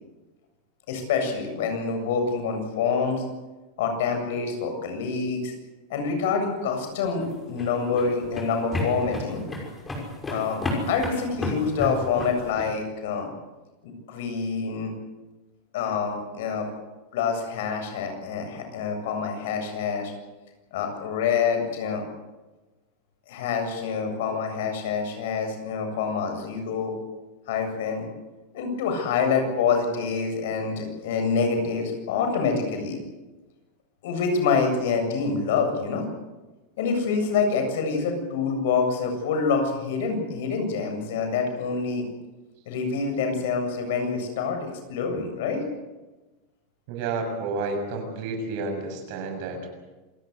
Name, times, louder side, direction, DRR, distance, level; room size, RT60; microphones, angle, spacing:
voice 1, 0.9-3.2 3.8-5.5 5.9-9.4 10.3-10.6 10.9-13.3 13.8-14.9 15.7-16.7 17.1-20.1 20.7-22.0 23.3-26.9 27.5-28.1 28.5-33.0 34.0-36.1 36.8-42.1 42.7-45.6, left 5 dB, 70° left, 5 dB, 7.7 m, -26 dB
sound 1, 7.0-12.7, left 1 dB, 10° left, 6.2 m, -32 dB
voice 2, 46.9-49.7, right 3 dB, 55° right, 5 dB, 7.0 m, -30 dB
27.0 x 17.5 x 8.3 m, 1.2 s
supercardioid pair, 150°, 0 cm